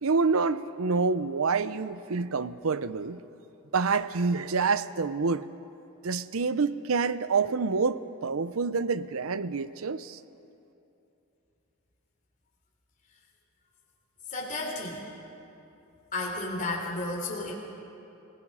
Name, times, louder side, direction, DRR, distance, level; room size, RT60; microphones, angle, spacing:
voice 1, 0.0-3.2 3.7-5.5 6.0-10.2, right 4 dB, 75° right, 15 dB, 0.7 m, -27 dB
voice 2, 14.3-15.0 16.1-17.5, left 2 dB, 40° left, -2 dB, 3.6 m, -32 dB
28.5 x 18.5 x 5.5 m, 2.8 s
head